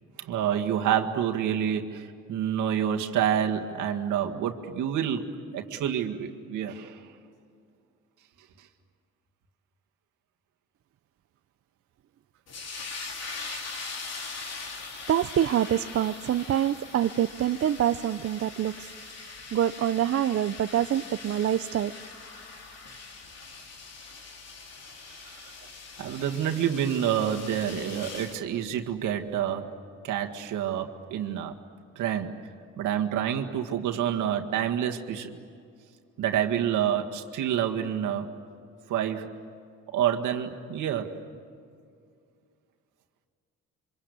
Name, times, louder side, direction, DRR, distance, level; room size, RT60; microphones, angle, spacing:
voice 1, 0.2-5.3 5.5-7.0 25.2-25.5 26.0-29.7 30.0-31.5 32.0-32.3 32.8-35.3 36.2-38.3 38.9-39.4 39.9-41.2, right 9 dB, 85° right, 3 dB, 1.9 m, -28 dB
sound 1, 12.5-28.4, left 4 dB, 55° left, 3.4 m, -41 dB
voice 2, 15.1-18.9 19.5-21.9, right 10 dB, 50° right, 11 dB, 0.6 m, -26 dB
27.5 x 25.5 x 8.4 m, 2.3 s
cardioid pair, 90°, 30 cm